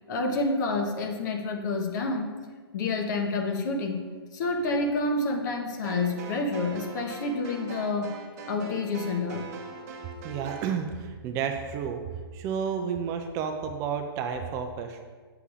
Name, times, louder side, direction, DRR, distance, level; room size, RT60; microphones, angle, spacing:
voice 1, 0.1-2.3 2.7-4.0 4.3-8.2 8.4-9.5, left 3 dB, 45° left, 3 dB, 1.0 m, -28 dB
sound 1, 5.8-10.8, right 4 dB, 40° right, 1.0 m, -42 dB
voice 2, 10.2-12.0 12.3-15.0, right 7 dB, 25° right, 5 dB, 0.4 m, -31 dB
8.2 x 6.8 x 2.4 m, 1.5 s
hypercardioid pair, 135°, 13 cm